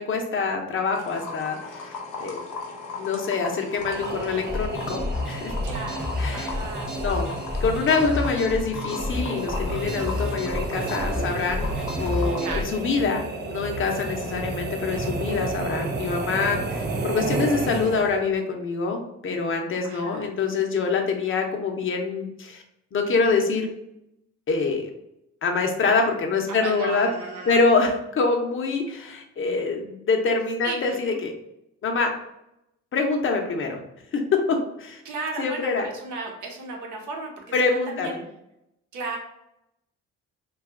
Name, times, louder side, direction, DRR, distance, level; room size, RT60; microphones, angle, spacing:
voice 1, 0.0-2.4 2.9-5.5 6.2-6.5 6.9-7.3 7.6-11.7 12.0-22.6 22.9-23.7 24.5-24.9 25.4-27.1 27.5-31.3 31.8-32.1 32.9-33.8 34.1-35.0 35.4-35.9 37.5-38.2, left 4 dB, 45° left, 3 dB, 0.7 m, -25 dB
sound 1, 0.9-12.4, left 4 dB, 90° left, 0.7 m, -38 dB
sound 2, 3.8-18.4, right 3 dB, 35° right, 0.5 m, -32 dB
sound 3, 4.5-12.6, left 2 dB, 5° right, 0.7 m, -30 dB
voice 2, 5.6-6.9 12.4-12.7 19.8-20.3 26.5-27.6 30.6-31.2 35.0-38.2 38.9-39.2, right 3 dB, 75° right, 0 dB, 0.9 m, -35 dB
2.6 x 2.4 x 3.6 m, 0.83 s
cardioid pair, 90°, 30 cm